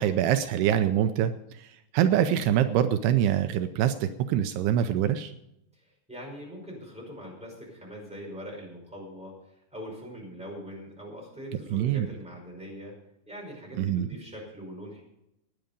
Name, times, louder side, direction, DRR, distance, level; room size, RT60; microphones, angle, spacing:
voice 1, 0.0-5.3 11.7-12.1 13.8-14.1, right 10 dB, 85° right, 9 dB, 2.7 m, -25 dB
voice 2, 5.7-12.9 13.2-15.0, equal, ahead, -2 dB, 4.9 m, -42 dB
17.0 x 10.0 x 5.3 m, 0.81 s
omnidirectional pair, 4.7 m